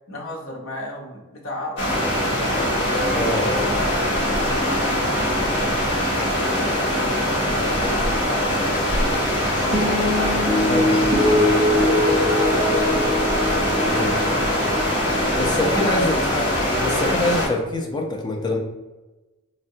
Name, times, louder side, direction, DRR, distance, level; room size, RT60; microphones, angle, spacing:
voice 1, 0.1-2.3 2.9-5.7 6.1-8.3 8.8-10.5 10.9-13.2 14.2-14.6 15.2-16.4, equal, 75° left, -1 dB, 0.7 m, -34 dB
sound 1, 1.8-17.5, equal, 55° left, 1.1 m, -22 dB
voice 2, 3.1-3.7 10.7-11.0 11.3-11.6 13.9-14.2 15.4-16.5 16.8-18.6, left 2 dB, 20° left, 2 dB, 0.3 m, -25 dB
sound 2, 9.7-16.3, left 1 dB, 55° right, 0.7 m, -23 dB
3.5 x 2.1 x 2.7 m, 1.1 s
head